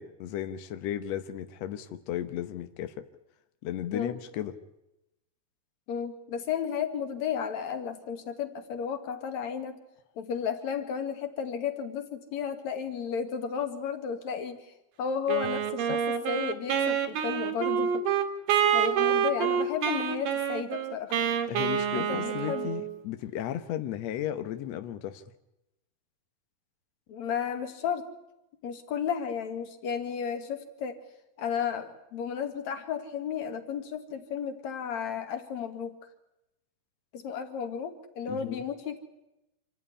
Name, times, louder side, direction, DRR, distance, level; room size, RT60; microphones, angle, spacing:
voice 1, 0.0-2.9 3.6-4.5 21.5-25.2 38.3-38.6, left 11 dB, 75° left, 9 dB, 1.5 m, -35 dB
voice 2, 5.9-9.8 10.2-14.6 15.0-18.0 18.7-21.2 21.9-22.7 27.1-28.1 28.6-31.0 31.4-36.0 37.1-39.0, left 7 dB, 55° left, 7 dB, 2.9 m, -33 dB
Wind instrument woodwind instrument, 15.3-23.0, right 8 dB, 65° right, 3.0 m, -27 dB
26.5 x 14.5 x 9.9 m, 0.91 s
omnidirectional pair, 4.5 m